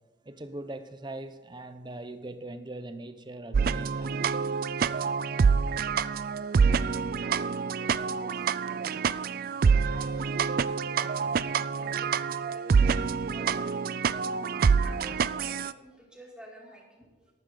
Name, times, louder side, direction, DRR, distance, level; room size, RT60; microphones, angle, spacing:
voice 1, 0.2-4.2, right 2 dB, 25° right, 10 dB, 0.7 m, -41 dB
sound 1, 3.5-15.7, right 5 dB, 50° right, 0.3 m, -26 dB
voice 2, 6.9-9.5 9.9-10.3 10.9-14.1 14.8-17.3, right 1 dB, 5° right, -3 dB, 2.9 m, -50 dB
13.5 x 12.5 x 3.9 m, 1.3 s
head